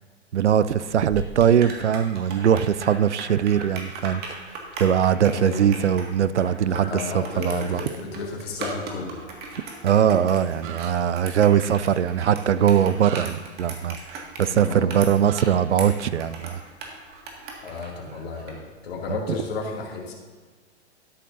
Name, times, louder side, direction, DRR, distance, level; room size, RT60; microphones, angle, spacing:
voice 1, 0.3-4.4 4.8-7.9 9.8-16.6, right 9 dB, 85° right, 16 dB, 0.5 m, -21 dB
sound 1, 0.9-18.6, right 3 dB, 30° right, 1.9 m, -39 dB
voice 2, 5.3-5.8 6.7-9.2 14.5-14.8 17.6-20.1, left 4 dB, 60° left, 0 dB, 2.5 m, -33 dB
sound 2, 8.6-8.8 10.6-10.9 13.0-13.3 15.2-15.5, right 9 dB, 45° right, 1.0 m, -37 dB
13.0 x 10.5 x 2.6 m, 1.5 s
figure-of-eight pair, 100°, 34 cm